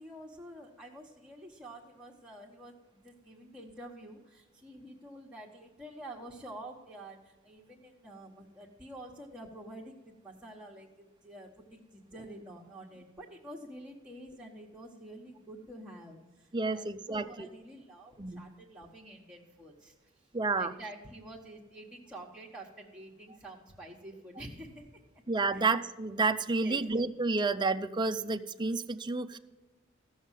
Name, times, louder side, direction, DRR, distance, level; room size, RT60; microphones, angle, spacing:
voice 1, 0.0-20.3 20.6-24.9 25.5-25.7 26.6-26.8, right 1 dB, 5° right, -6 dB, 1.2 m, -48 dB
voice 2, 16.5-17.5 18.2-18.4 20.3-20.7 25.3-29.4, right 3 dB, 20° right, 8 dB, 0.5 m, -30 dB
15.0 x 6.4 x 7.5 m, 1.2 s
head